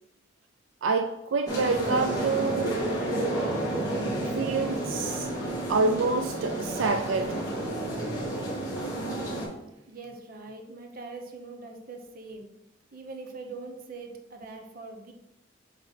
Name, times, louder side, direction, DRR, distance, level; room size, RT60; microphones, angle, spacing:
voice 1, 0.8-2.8 4.4-5.3 5.7-7.4, right 4 dB, 80° right, 7 dB, 0.4 m, -27 dB
sound 1, 1.5-9.5, right 1 dB, 20° left, 1.9 m, -30 dB
voice 2, 9.9-12.5 12.9-15.1, right 3 dB, 50° right, 4 dB, 0.9 m, -42 dB
8.1 x 3.2 x 4.0 m, 0.92 s
head